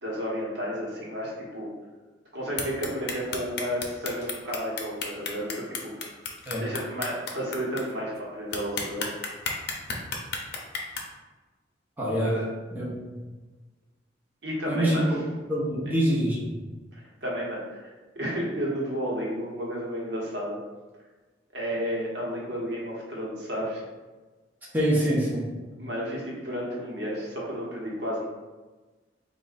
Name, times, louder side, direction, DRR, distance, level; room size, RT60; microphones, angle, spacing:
voice 1, 0.0-1.7 2.3-6.1 6.6-9.1 12.2-12.4 14.4-15.2 16.9-20.6 21.5-23.8 25.8-28.3, equal, 65° right, -5 dB, 1.2 m, -32 dB
sound 1, 2.6-7.8 8.2-8.3 8.5-11.0, left 5 dB, 60° left, 0.7 m, -32 dB
voice 2, 12.0-12.3 12.7-13.2 14.6-15.0 15.5-16.4 24.7-25.4, equal, 10° right, -8 dB, 1.0 m, -25 dB
4.0 x 2.6 x 4.0 m, 1.3 s
head